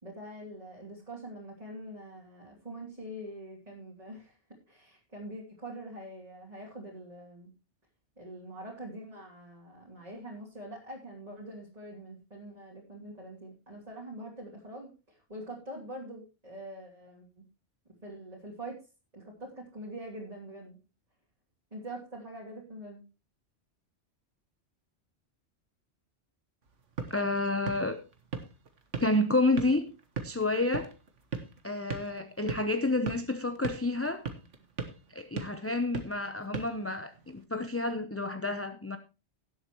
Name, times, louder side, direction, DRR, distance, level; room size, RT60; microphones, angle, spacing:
voice 1, 0.0-4.4 4.7-7.5 8.2-17.4 18.0-18.8 19.1-20.8 21.7-23.0, right 1 dB, 35° right, 3.0 m, -44 dB
sound 1, 26.6-37.4, right 5 dB, 80° right, 1.9 m, -41 dB
voice 2, 27.1-28.0 29.0-29.9 30.2-30.9 31.6-34.2 35.1-39.0, left 2 dB, 15° left, 0.7 m, -29 dB
17.5 x 7.8 x 3.1 m
omnidirectional pair, 1.2 m